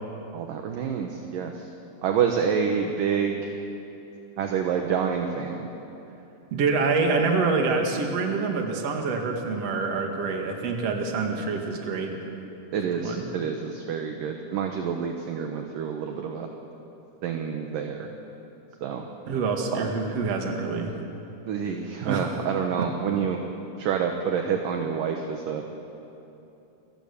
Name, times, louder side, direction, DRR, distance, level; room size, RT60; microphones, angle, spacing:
voice 1, 0.3-1.7 2.0-3.5 4.4-5.7 12.7-16.5 17.2-18.1 18.8-19.1 19.7-19.9 21.5-23.4 23.8-25.6, right 7 dB, 65° right, 3 dB, 2.3 m, -28 dB
voice 2, 6.5-12.1 13.0-13.2 19.3-20.9 22.0-22.3, right 4 dB, 45° right, 2 dB, 2.5 m, -26 dB
29.0 x 16.0 x 7.1 m, 2.9 s
omnidirectional pair, 5.0 m